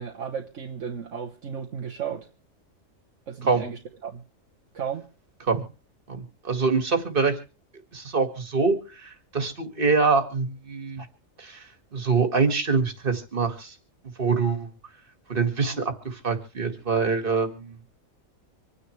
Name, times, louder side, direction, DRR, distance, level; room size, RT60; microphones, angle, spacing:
voice 1, 0.0-2.3 3.3-4.2 4.7-5.1, right 7 dB, 65° right, 1.5 m, -34 dB
voice 2, 6.1-7.3 7.9-11.1 11.4-11.6 11.9-13.7 14.2-14.7 15.3-17.8, right 4 dB, 40° right, 2.2 m, -25 dB
26.0 x 9.8 x 3.3 m
omnidirectional pair, 1.4 m